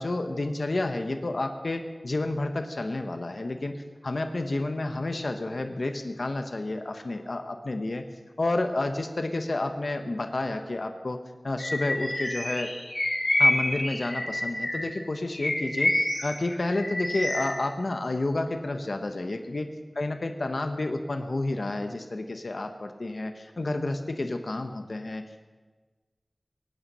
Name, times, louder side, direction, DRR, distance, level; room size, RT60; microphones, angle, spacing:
voice 1, 0.0-3.7 4.0-8.0 8.4-12.7 13.4-15.9 16.2-19.7 20.0-25.4, left 2 dB, 70° left, 6 dB, 1.2 m, -30 dB
Bird vocalization bird call bird song, 11.6-14.9 15.3-17.5, left 1 dB, 50° left, 4.4 m, -27 dB
22.5 x 9.1 x 5.6 m, 1.3 s
wide cardioid pair, 55°, 0 cm